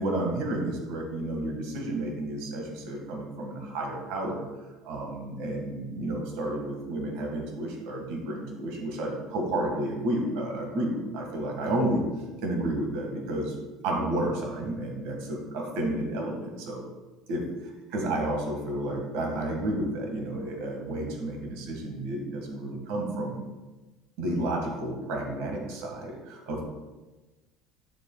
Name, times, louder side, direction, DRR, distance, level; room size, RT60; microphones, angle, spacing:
voice 1, 0.0-4.4 4.8-12.0 12.4-13.5 13.8-16.8 17.3-17.5 17.9-23.4 24.2-26.6, right 1 dB, 70° right, 1 dB, 1.6 m, -31 dB
9.3 x 7.1 x 2.3 m, 1.2 s
cardioid pair, 170°, 0 cm